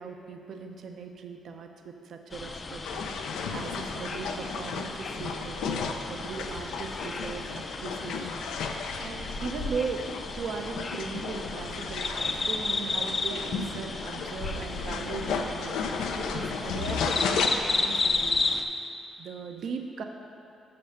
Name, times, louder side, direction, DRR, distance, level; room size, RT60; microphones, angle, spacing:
voice 1, 0.0-18.4 18.7-18.9 19.2-20.0, right 5 dB, 65° right, 4 dB, 0.7 m, -38 dB
sound 1, 2.3-18.6, left 3 dB, 35° left, 0.5 m, -33 dB
sound 2, 2.8-17.5, left 5 dB, 85° left, 0.5 m, -34 dB
6.9 x 5.5 x 6.5 m, 2.6 s
cardioid pair, 90°, 0 cm